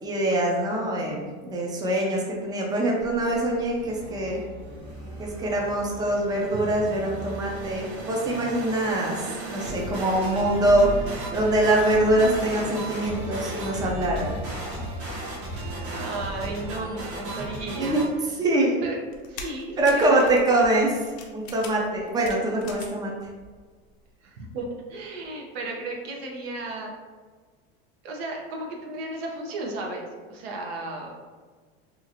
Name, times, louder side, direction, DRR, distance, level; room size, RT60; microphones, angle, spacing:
voice 1, 0.0-4.4 5.2-10.9 11.3-14.4 17.8-18.0 18.4-18.8 19.8-23.1, right 1 dB, 10° right, -2 dB, 0.5 m, -24 dB
sound 1, 3.0-18.1, right 1 dB, 50° right, 1.0 m, -35 dB
voice 2, 15.9-18.0 18.8-19.0 19.3-20.4 24.2-26.9 28.0-30.0 30.3-31.1, right 2 dB, 70° right, 0 dB, 0.7 m, -34 dB
sound 2, 19.1-23.1 23.4-24.1 24.5-24.6, left 4 dB, 80° left, 0.6 m, -42 dB
2.9 x 2.4 x 2.7 m, 1.4 s
supercardioid pair, 110°, 32 cm